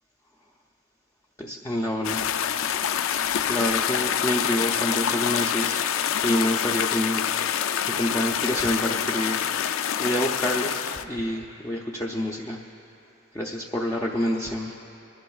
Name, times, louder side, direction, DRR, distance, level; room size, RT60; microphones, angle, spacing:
voice 1, 1.4-2.2 3.5-5.9 6.2-7.2 7.9-9.4 10.0-12.6 13.3-14.7, left 1 dB, 15° left, -2 dB, 0.5 m, -27 dB
sound 1, 2.0-11.0, left 9 dB, 70° left, 0.4 m, -26 dB
24.5 x 11.5 x 2.3 m, 2.9 s
head